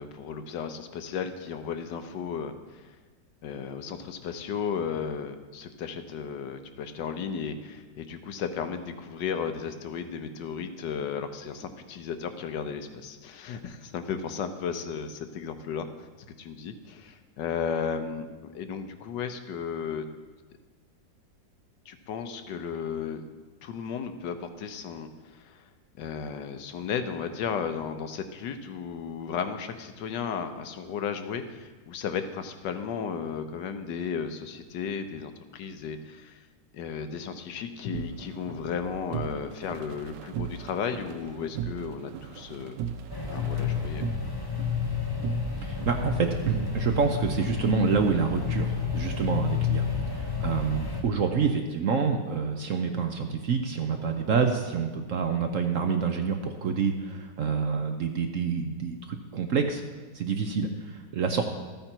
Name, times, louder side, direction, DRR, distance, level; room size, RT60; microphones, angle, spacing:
voice 1, 0.0-3.0 3.4-16.1 16.4-20.0 21.9-23.2 23.6-25.7 26.0-36.4 36.7-42.8 43.3-44.0, left 6 dB, 75° left, 8 dB, 1.4 m, -34 dB
sound 1, 37.9-47.8, right 8 dB, 80° right, 1.3 m, -38 dB
sound 2, 43.1-51.0, left 6 dB, 15° left, 0.9 m, -30 dB
voice 2, 45.6-49.9 50.1-59.8 60.1-61.4, right 5 dB, 60° right, 5 dB, 0.9 m, -27 dB
13.5 x 8.9 x 4.5 m, 1.3 s
omnidirectional pair, 1.9 m